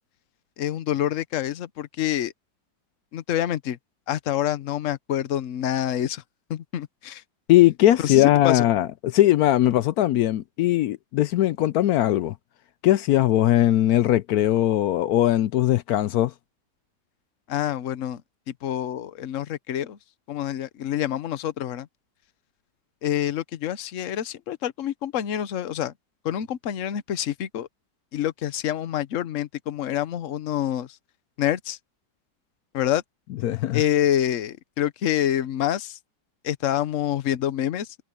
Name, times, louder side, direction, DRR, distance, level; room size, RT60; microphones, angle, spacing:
voice 1, 0.6-2.3 3.1-3.8 4.1-6.2 6.5-7.2 8.0-8.7 17.5-18.2 18.5-20.0 20.3-21.9 23.0-25.9 26.2-27.7 28.1-30.9 31.4-31.8 32.7-33.0 33.7-36.0 36.4-37.9, left 11 dB, 55° left, 1.0 m, -27 dB
voice 2, 7.5-12.3 12.8-16.3 33.4-33.8, left 13 dB, 75° left, 0.9 m, -20 dB
omnidirectional pair, 2.0 m